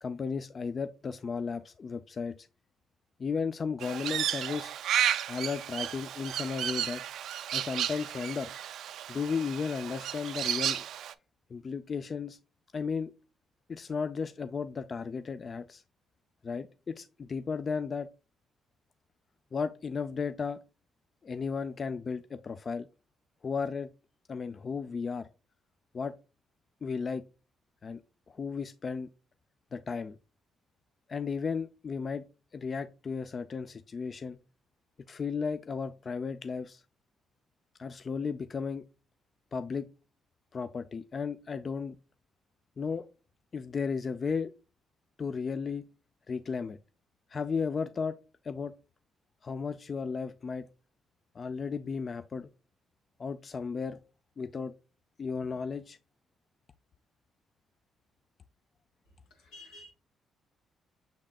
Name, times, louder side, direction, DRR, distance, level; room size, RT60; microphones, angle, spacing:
voice 1, 0.0-2.5 3.2-4.7 5.3-7.0 7.5-8.5 9.1-10.9 11.5-12.4 12.7-13.1 13.7-15.8 16.4-18.1 19.5-20.6 21.2-22.9 23.4-23.9 24.3-25.3 25.9-26.1 26.8-27.2 27.8-28.0 28.3-29.1 29.7-30.2 31.1-32.2 32.5-34.4 35.1-36.8 37.8-38.8 39.5-39.9 40.5-42.0 42.8-43.1 43.5-44.5 45.2-45.9 46.3-46.8 47.3-48.2 48.4-48.7 49.4-50.7 51.4-52.5 53.2-54.0 54.4-54.7 55.2-56.0, left 5 dB, 40° left, 0.3 m, -34 dB
Crow, 3.8-11.1, right 10 dB, 75° right, 0.4 m, -33 dB
voice 2, 59.3-59.9, left 1 dB, 85° left, 1.7 m, -51 dB
6.5 x 3.6 x 2.3 m
cardioid pair, 90°, 0 cm